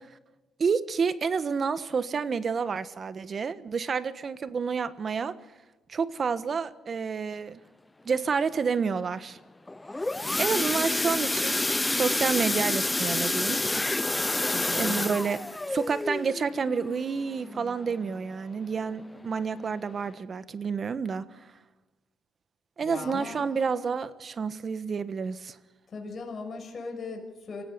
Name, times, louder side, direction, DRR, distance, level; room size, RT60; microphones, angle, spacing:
voice 1, 0.6-5.4 5.9-7.6 8.0-9.4 10.4-13.6 14.8-15.4 15.7-21.4 22.8-25.6, right 5 dB, 45° right, 13 dB, 1.3 m, -29 dB
sound 1, 9.7-18.3 18.8-19.0 19.3-19.4 19.9-20.0, left 2 dB, 15° left, 0.6 m, -29 dB
voice 2, 14.5-15.2 22.8-23.4 25.9-27.6, left 4 dB, 45° left, 2 dB, 6.4 m, -38 dB
25.5 x 17.0 x 6.9 m, 1.2 s
cardioid pair, 90°, 0 cm